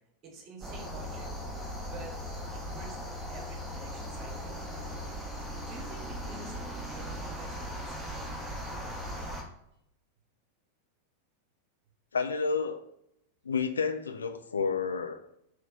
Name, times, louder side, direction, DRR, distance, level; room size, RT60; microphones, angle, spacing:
voice 1, 0.2-1.3 1.9-2.2 2.5-3.0 3.3-4.7 5.7-8.4, right 3 dB, 30° right, 1 dB, 1.0 m, -49 dB
sound 1, 0.6-9.4, equal, 5° right, 0.8 m, -38 dB
voice 2, 12.1-12.9 13.4-15.2, left 5 dB, 70° left, 9 dB, 0.3 m, -30 dB
3.3 x 3.0 x 3.5 m, 0.77 s
figure-of-eight pair, 90°, 0 cm